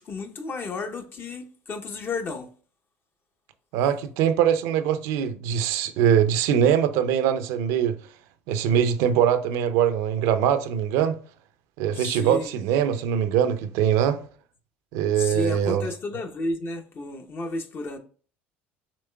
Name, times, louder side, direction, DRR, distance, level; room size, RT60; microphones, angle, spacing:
voice 1, 0.0-2.5 12.0-12.5 15.2-18.0, left 2 dB, 40° left, 0.9 m, -32 dB
voice 2, 3.7-8.0 8.5-11.2 11.8-14.2 14.9-15.9, right 9 dB, 70° right, 0.6 m, -22 dB
6.9 x 3.1 x 2.3 m
hypercardioid pair, 75°, 6 cm